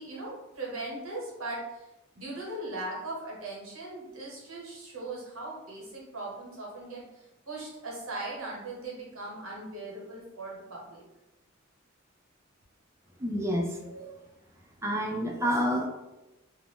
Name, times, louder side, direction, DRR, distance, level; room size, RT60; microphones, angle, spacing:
voice 1, 0.0-1.9 2.1-11.0, right 2 dB, 90° right, -4 dB, 1.1 m, -39 dB
voice 2, 13.2-14.1 14.8-15.9, equal, 15° right, 0 dB, 0.4 m, -29 dB
2.5 x 2.1 x 3.5 m, 0.99 s
head